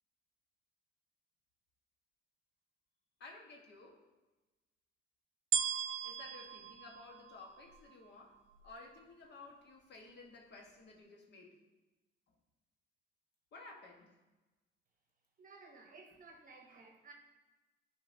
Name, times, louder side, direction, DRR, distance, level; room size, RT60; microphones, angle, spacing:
voice 1, 3.2-4.0 5.8-8.4 8.6-11.6 13.5-14.2, left 3 dB, 60° left, 0 dB, 1.2 m, -54 dB
sound 1, 5.5-7.9 8.5-8.6, right 8 dB, 75° right, 0.5 m, -37 dB
voice 2, 15.4-17.1, right 3 dB, 45° right, 2 dB, 0.9 m, -56 dB
9.8 x 4.5 x 2.6 m, 1.2 s
cardioid pair, 90°, 20 cm